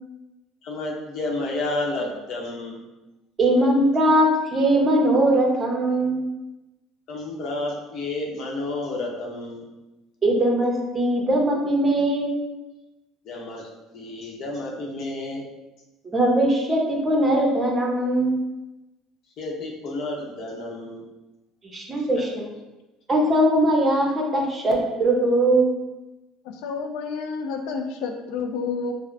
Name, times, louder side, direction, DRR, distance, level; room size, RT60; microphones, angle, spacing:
voice 1, 0.6-2.8 7.1-9.6 13.2-15.4 19.4-21.0 22.0-22.3, left 2 dB, 60° left, -1 dB, 0.8 m, -31 dB
voice 2, 3.4-6.2 10.2-12.4 16.1-18.4 21.7-22.5 23.1-25.8, right 1 dB, 25° right, -1 dB, 0.8 m, -20 dB
voice 3, 26.5-28.9, left 5 dB, 80° left, 4 dB, 0.3 m, -30 dB
4.9 x 2.1 x 2.6 m, 1.0 s
supercardioid pair, 95°, 0 cm